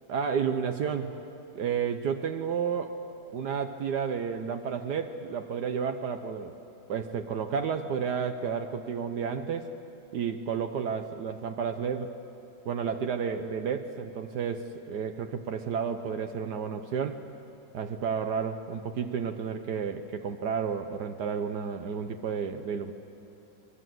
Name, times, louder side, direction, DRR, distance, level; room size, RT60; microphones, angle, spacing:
voice 1, 0.1-1.2 1.5-3.0 3.3-6.5 6.9-9.7 10.1-12.2 12.6-17.2 17.7-22.9, right 6 dB, 65° right, 7 dB, 1.4 m, -31 dB
23.5 x 22.5 x 7.8 m, 2.9 s
omnidirectional pair, 2.0 m